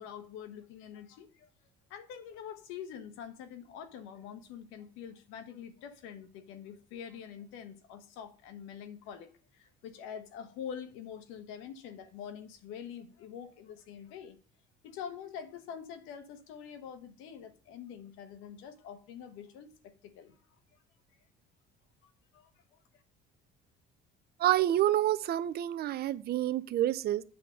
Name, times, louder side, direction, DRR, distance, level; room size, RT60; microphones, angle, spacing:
voice 1, 0.0-1.5 1.9-14.4 14.8-20.4 22.0-22.8, left 8 dB, 90° left, 1.3 m, -45 dB
voice 2, 24.4-27.2, right 13 dB, 55° right, 0.6 m, -28 dB
8.4 x 3.8 x 6.6 m
cardioid pair, 125°, 20 cm